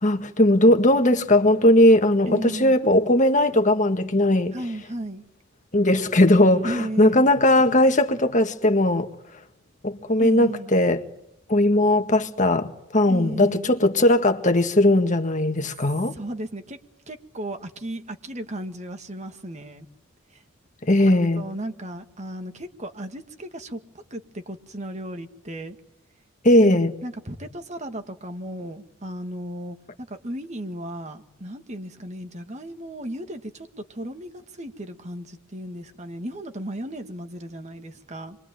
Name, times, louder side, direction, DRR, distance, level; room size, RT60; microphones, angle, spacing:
voice 1, 0.0-4.6 5.7-9.1 9.8-11.0 11.5-16.1 20.9-21.5 26.4-26.9, left 1 dB, 40° left, 1.8 m, -18 dB
voice 2, 2.3-2.8 4.5-5.2 6.6-7.2 10.2-10.7 13.1-13.7 16.1-16.8 17.1-19.9 20.3-20.4 21.1-25.8 26.6-38.4, right 1 dB, 35° right, 2.0 m, -35 dB
28.5 x 23.0 x 9.1 m
head